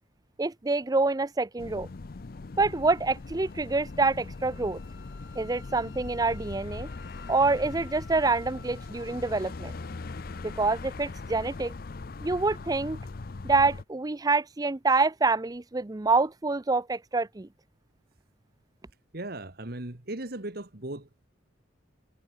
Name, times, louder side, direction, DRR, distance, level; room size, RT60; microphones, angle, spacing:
voice 1, 0.4-1.9 2.6-4.8 5.4-6.9 7.3-9.7 10.4-11.7 12.2-13.0 13.4-17.5, right 3 dB, 20° right, 0.5 m, -26 dB
sound 1, 1.6-13.8, left 3 dB, 50° left, 0.6 m, -40 dB
Wind instrument woodwind instrument, 2.7-10.9, left 5 dB, 75° left, 4.1 m, -55 dB
voice 2, 19.1-21.1, right 1 dB, 55° right, 2.0 m, -37 dB
head